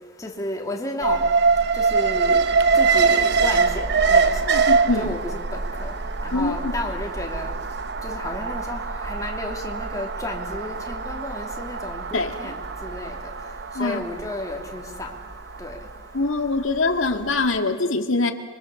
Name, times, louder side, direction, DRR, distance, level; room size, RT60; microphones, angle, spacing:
voice 1, 0.2-1.2 1.7-2.5 2.8-4.6 5.0-5.9 6.2-7.5 8.0-13.1 13.8-15.1 15.6-15.8, left 2 dB, 15° left, 0 dB, 3.1 m, -32 dB
Alarm, 1.0-17.1 17.4-17.5, right 4 dB, 55° right, 1.0 m, -24 dB
voice 2, 4.4-5.1 6.3-6.7 12.1-12.5 13.7-14.0 16.1-18.3, left 3 dB, 85° left, 5 dB, 2.0 m, -24 dB
27.0 x 25.0 x 7.2 m, 1.5 s
head